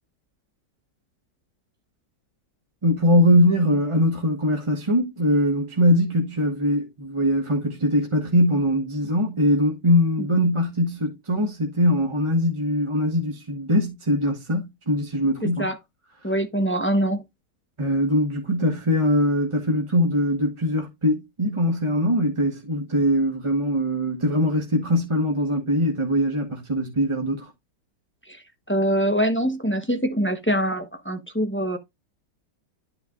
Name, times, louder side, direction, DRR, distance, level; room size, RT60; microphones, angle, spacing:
voice 1, 2.8-15.7 16.2-16.3 17.8-27.5, equal, 20° right, 1.1 m, -22 dB
voice 2, 15.4-15.8 16.2-17.2 28.3-31.8, equal, 10° left, 0.6 m, -24 dB
11.0 x 5.7 x 2.4 m
omnidirectional pair, 1.9 m